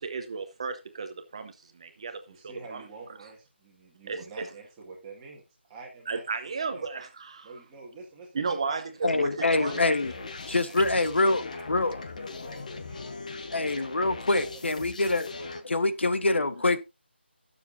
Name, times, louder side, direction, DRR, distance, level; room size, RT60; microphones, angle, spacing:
voice 1, 0.0-2.8 4.1-4.5 6.1-7.5 8.3-9.8, right 4 dB, 30° right, 0.8 m, -34 dB
voice 2, 2.3-6.9 7.4-9.2 9.8-15.1 15.4-15.7 16.6-16.7, right 4 dB, 10° right, 1.9 m, -49 dB
voice 3, 9.0-10.1 10.5-11.4 11.7-12.0 13.5-15.3 15.6-16.8, left 2 dB, 75° left, 1.2 m, -25 dB
sound 1, 9.5-15.6, left 4 dB, 40° left, 1.0 m, -40 dB
17.0 x 7.1 x 2.7 m
figure-of-eight pair, 170°, 6 cm